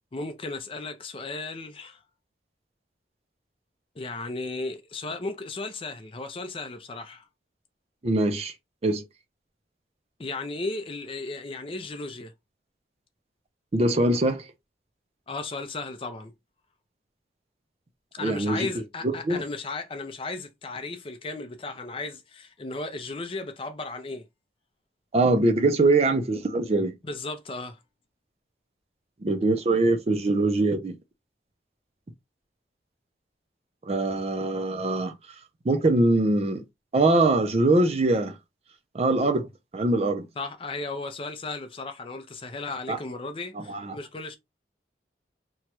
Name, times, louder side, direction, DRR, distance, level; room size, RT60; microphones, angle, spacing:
voice 1, 0.1-2.0 4.0-7.3 10.2-12.3 15.3-16.3 18.1-24.3 27.0-27.8 40.4-44.4, left 3 dB, 30° left, 0.5 m, -35 dB
voice 2, 8.0-8.5 8.8-9.0 13.7-14.5 18.2-18.7 19.0-19.4 25.1-26.9 29.2-31.0 33.9-35.1 35.7-36.6 36.9-38.4 38.9-39.5 39.7-40.2 42.9-43.0 43.6-44.0, right 2 dB, 35° right, 0.4 m, -23 dB
3.0 x 2.3 x 2.9 m
head